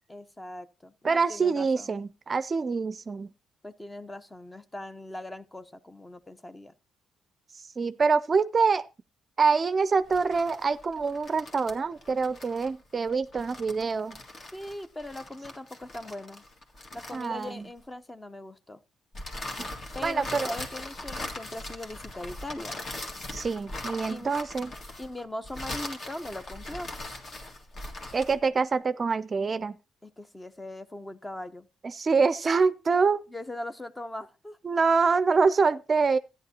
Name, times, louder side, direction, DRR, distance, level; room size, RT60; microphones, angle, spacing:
voice 1, 0.1-1.9 3.6-6.7 14.5-16.4 16.9-18.8 19.9-22.8 24.1-24.3 25.0-26.9 30.0-31.7 33.3-34.6, left 1 dB, 15° left, 0.7 m, -40 dB
voice 2, 1.0-3.3 7.8-8.8 9.4-14.2 17.1-17.6 20.0-20.5 23.3-24.7 28.1-29.8 31.8-33.2 34.6-36.2, right 4 dB, 35° right, 0.4 m, -25 dB
sound 1, 10.0-17.8 19.1-28.4, left 1 dB, 45° left, 1.8 m, -40 dB
13.5 x 10.0 x 2.8 m
cardioid pair, 90°, 0 cm